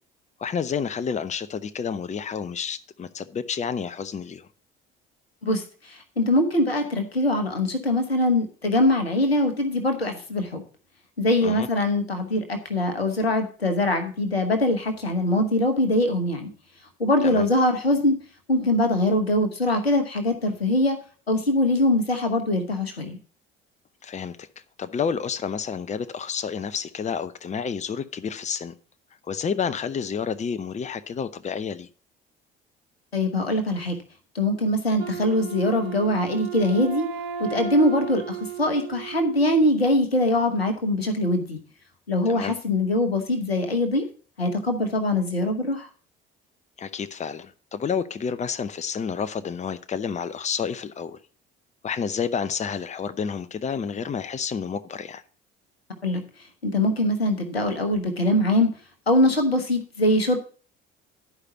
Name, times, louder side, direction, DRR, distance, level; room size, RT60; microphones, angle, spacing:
voice 1, 0.4-4.5 11.4-11.7 17.2-17.5 24.0-24.5 24.8-28.7 29.3-31.9 42.3-42.5 46.8-51.2 51.8-55.2, left 6 dB, 25° left, 0.7 m, -30 dB
voice 2, 5.4-10.6 11.2-16.5 17.0-18.2 18.5-21.0 21.3-23.2 33.1-34.0 34.3-37.1 37.4-41.6 42.1-44.0 44.4-45.9 56.0-56.2 56.6-58.7 59.1-60.4, left 1 dB, 90° left, 1.0 m, -22 dB
Wind instrument woodwind instrument, 35.0-40.0, right 6 dB, 70° right, 1.0 m, -34 dB
11.0 x 5.0 x 5.8 m
figure-of-eight pair, 55°, 30 cm